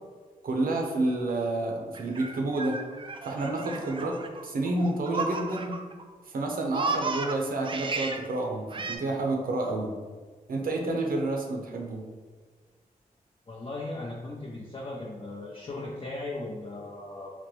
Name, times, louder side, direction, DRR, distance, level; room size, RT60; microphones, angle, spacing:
voice 1, 0.4-2.8 3.2-5.8 6.3-9.9 10.5-12.0, right 2 dB, 75° right, 1 dB, 0.6 m, -29 dB
Laughter, 1.9-6.0 6.3-8.2 8.7-9.0, right 3 dB, 35° right, 0.3 m, -34 dB
voice 2, 13.5-17.3, left 2 dB, 35° left, -4 dB, 0.6 m, -37 dB
3.9 x 2.1 x 3.0 m, 1.5 s
cardioid pair, 55°, 15 cm